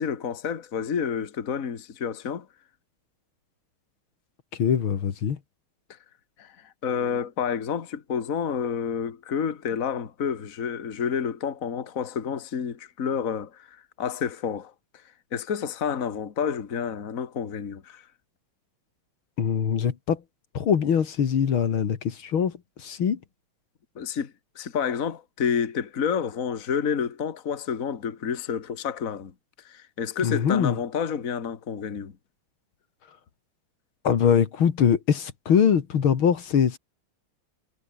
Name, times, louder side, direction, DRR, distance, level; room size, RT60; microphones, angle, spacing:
voice 1, 0.0-2.5 6.4-14.7 15.3-18.1 24.0-29.3 29.6-32.1, left 7 dB, 40° left, 2.0 m, -29 dB
voice 2, 4.6-5.4 19.4-20.2 20.5-22.5 22.8-23.2 30.2-30.8 34.0-36.8, left 7 dB, 75° left, 2.6 m, -22 dB
omnidirectional pair, 2.3 m